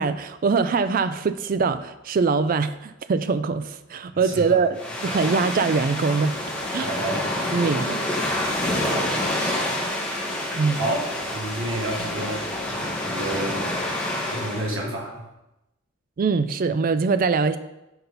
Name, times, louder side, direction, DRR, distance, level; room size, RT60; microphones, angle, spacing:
voice 1, 0.0-6.4 6.7-6.9 7.5-8.0 10.5-10.9 16.2-17.6, right 4 dB, 40° right, 12 dB, 0.3 m, -23 dB
voice 2, 4.1-4.6 6.8-9.3 10.5-14.0 14.3-15.3, right 1 dB, 65° right, -1 dB, 1.5 m, -32 dB
sound 1, 4.7-14.7, left 1 dB, 5° left, 1.2 m, -28 dB
6.0 x 4.0 x 5.5 m, 0.94 s
head